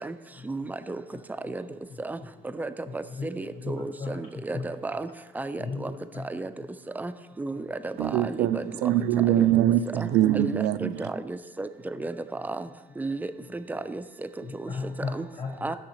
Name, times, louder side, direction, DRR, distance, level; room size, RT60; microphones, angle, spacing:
voice 1, 0.4-1.0 1.4-1.6 2.0-2.2 2.5-5.1 5.4-5.9 6.3-6.5 7.0-7.1 7.4-8.7 9.3-9.5 10.0-10.1 10.3-12.7 13.0-14.0 14.5-14.7 15.1-15.3 15.6-15.8, right 2 dB, 10° right, 0.4 m, -34 dB
voice 2, 2.9-4.2 4.5-4.7 5.6-6.3 7.5-7.6 11.9-12.1 14.4-15.7, left 4 dB, 40° left, 1.9 m, -36 dB
voice 3, 8.0-11.0, right 12 dB, 80° right, 0.4 m, -23 dB
11.5 x 6.4 x 3.0 m
cardioid pair, 110°, 17 cm